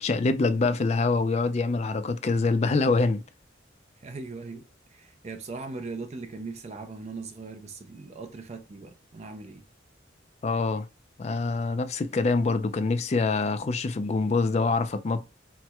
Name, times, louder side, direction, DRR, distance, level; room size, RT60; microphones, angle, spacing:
voice 1, 0.0-3.2 10.4-10.9 11.2-15.2, left 3 dB, 35° left, 0.3 m, -25 dB
voice 2, 4.0-9.6, right 3 dB, 35° right, 0.4 m, -39 dB
4.3 x 2.1 x 2.2 m
head